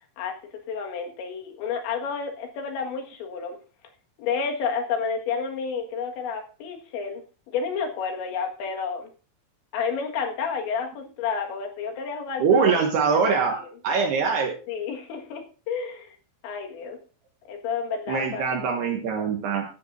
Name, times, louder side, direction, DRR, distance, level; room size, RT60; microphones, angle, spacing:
voice 1, 0.7-3.6 4.2-7.2 7.5-9.1 9.7-12.8 13.1-13.7 14.7-16.2 16.4-17.0 17.5-19.0, left 5 dB, 75° left, 2 dB, 3.9 m, -30 dB
voice 2, 12.4-13.6 13.8-14.5 18.1-19.6, right 5 dB, 70° right, 2 dB, 3.2 m, -23 dB
16.5 x 12.0 x 2.6 m, 0.37 s
omnidirectional pair, 5.4 m